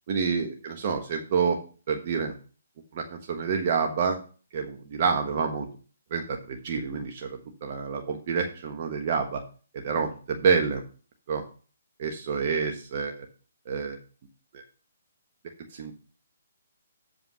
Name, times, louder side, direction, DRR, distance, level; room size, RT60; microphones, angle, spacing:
voice 1, 0.1-1.6 1.9-2.3 2.9-4.2 4.5-5.7 6.1-9.4 9.7-10.8 11.3-11.4 12.0-13.1 13.7-14.0 14.5-14.6 15.7-15.9, right 5 dB, 45° right, 4 dB, 1.3 m, -28 dB
7.3 x 5.6 x 5.8 m, 0.39 s
figure-of-eight pair, 140°, 0 cm